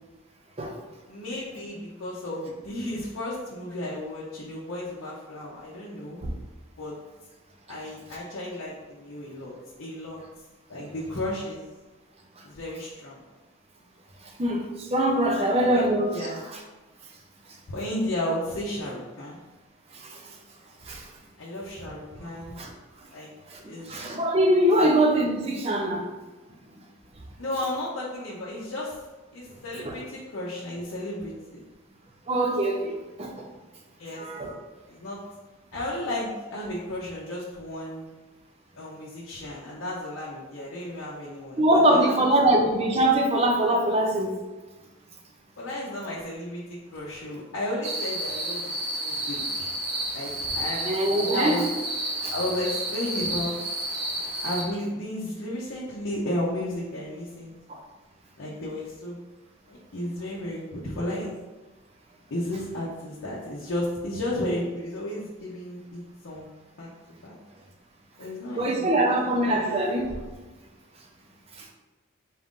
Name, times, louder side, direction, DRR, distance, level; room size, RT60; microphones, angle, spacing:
voice 1, 1.1-6.2 6.8-7.0 7.7-10.2 10.7-11.6 12.4-13.2 15.3-16.4 17.7-19.4 21.4-22.6 23.1-23.3 23.7-24.0 24.8-24.9 27.4-29.0 29.3-31.6 34.0-34.5 34.9-35.2 35.7-38.1 38.7-42.2 42.5-42.6 45.6-49.7 50.1-50.9 51.2-51.7 52.3-53.5 54.4-57.5 58.4-59.2 59.7-61.3 62.3-66.5 66.8-66.9 67.2-67.4 68.2-69.0 69.5-69.7, left 1 dB, 75° left, -6 dB, 0.7 m, -33 dB
voice 2, 14.4-16.1 20.0-20.2 20.9-21.0 22.2-22.3 22.6-22.7 23.5-23.6 23.9-26.0 29.8-29.9 32.3-33.4 34.2-34.5 41.6-44.3 50.8-51.6 52.2-52.3 68.6-70.2, right 1 dB, 30° right, 1 dB, 0.5 m, -23 dB
sound 1, 47.8-54.6, right 1 dB, 55° right, 0.9 m, -31 dB
4.2 x 2.5 x 3.6 m, 1.2 s
head